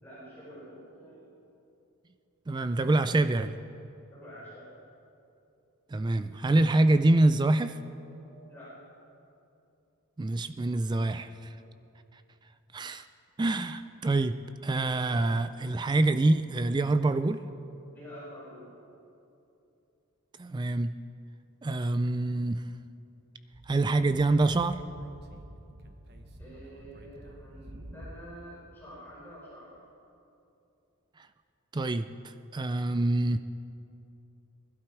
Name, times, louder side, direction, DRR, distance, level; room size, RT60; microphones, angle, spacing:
voice 1, 0.0-1.5 4.1-4.7 8.2-8.8 17.9-18.7 26.4-29.9, equal, 10° left, -9 dB, 4.7 m, -48 dB
voice 2, 2.5-3.5 5.9-7.8 10.2-11.5 12.7-13.1 13.4-17.4 20.4-21.0 21.6-22.6 23.7-24.8 31.2-31.3 31.7-33.4, right 2 dB, 20° right, 11 dB, 0.3 m, -26 dB
Speech / Wind, 23.5-28.4, right 1 dB, 45° right, 1.1 m, -48 dB
20.5 x 12.0 x 4.8 m, 2.8 s
head